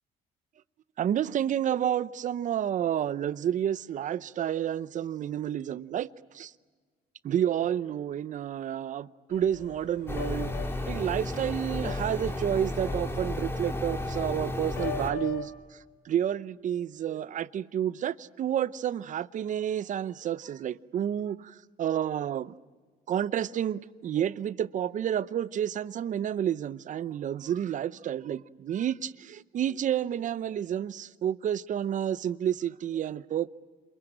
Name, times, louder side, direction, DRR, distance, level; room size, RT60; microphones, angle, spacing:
voice 1, 1.0-6.5 7.2-10.5 10.9-15.5 16.0-22.5 23.1-33.5, right 10 dB, 50° right, 0.7 m, -30 dB
sound 1, 9.3-15.5, left 7 dB, 85° left, 3.1 m, -42 dB
sound 2, 10.1-15.1, left 1 dB, 15° left, 2.5 m, -33 dB
28.0 x 21.5 x 8.9 m
cardioid pair, 110°, 17 cm